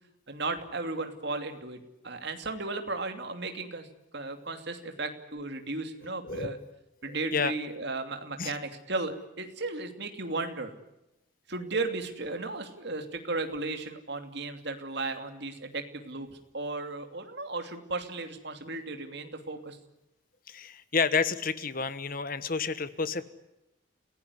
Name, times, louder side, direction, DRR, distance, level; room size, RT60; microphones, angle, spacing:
voice 1, 0.3-3.9 4.1-6.6 7.0-10.7 11.5-19.8, right 3 dB, 55° right, 6 dB, 2.8 m, -35 dB
voice 2, 6.2-6.7 7.3-7.5 8.4-8.5 20.5-23.2, left 5 dB, 45° left, 14 dB, 1.1 m, -30 dB
29.5 x 17.0 x 9.7 m, 0.91 s
head